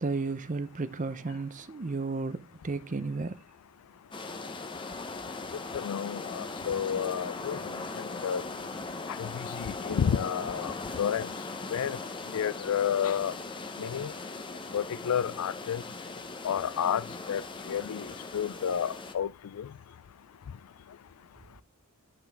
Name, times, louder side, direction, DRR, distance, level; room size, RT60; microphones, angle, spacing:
voice 1, 0.0-3.4, right 3 dB, 35° right, 0.5 m, -33 dB
sound 1, 4.1-19.1, left 3 dB, 20° left, 0.7 m, -39 dB
voice 2, 5.7-8.4 9.1-11.3 11.7-12.0 12.3-13.3 13.8-14.1 14.7-15.8 16.4-18.1 18.3-19.7, left 8 dB, 80° left, 0.4 m, -31 dB
10.0 x 5.9 x 3.4 m
head